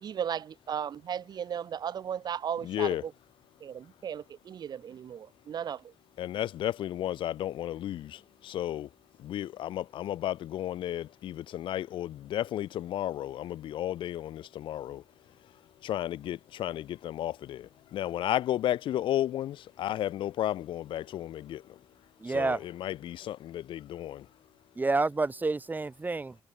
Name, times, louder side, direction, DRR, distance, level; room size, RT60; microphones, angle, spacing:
voice 1, 0.0-3.1 3.6-5.9, right 8 dB, 55° right, 0.5 m, -36 dB
voice 2, 2.6-3.0 6.2-8.9 9.2-15.0 15.8-21.8 22.3-24.3, left 12 dB, 85° left, 0.6 m, -33 dB
voice 3, 22.2-22.6 24.8-26.4, right 3 dB, 20° right, 1.3 m, -29 dB
cardioid pair, 110°, 8 cm